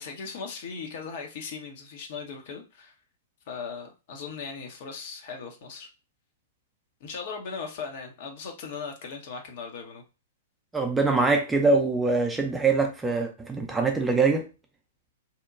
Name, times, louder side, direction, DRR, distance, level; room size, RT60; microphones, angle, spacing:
voice 1, 0.0-2.9 3.5-5.9 7.0-10.0, left 5 dB, 50° left, 0.6 m, -38 dB
voice 2, 10.7-14.4, right 3 dB, 10° right, 0.5 m, -23 dB
2.8 x 2.1 x 2.5 m
figure-of-eight pair, 105°, 0 cm